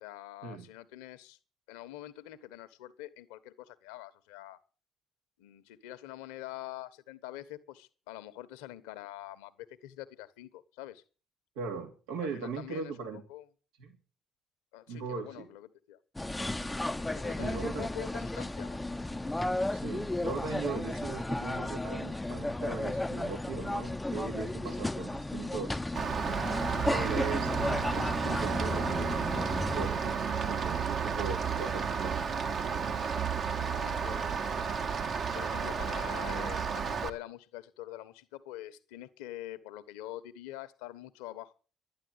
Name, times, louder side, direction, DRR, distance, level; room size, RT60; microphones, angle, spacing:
voice 1, 0.0-1.4 1.7-4.6 5.4-11.0 12.2-13.4 14.7-16.0 16.9-18.8 33.1-34.6 35.3-41.5, left 14 dB, 80° left, 13 dB, 1.2 m, -45 dB
voice 2, 11.5-13.2 13.8-14.0 14.9-15.5 17.4-17.9 19.7-25.8 26.8-32.2, right 5 dB, 80° right, 3 dB, 2.9 m, -39 dB
sound 1, 16.1-29.9, left 2 dB, 10° left, 0.7 m, -34 dB
Rain, 26.0-37.1, right 6 dB, 55° right, 1.8 m, -32 dB
11.5 x 10.5 x 8.1 m, 0.38 s
hypercardioid pair, 55°, 0 cm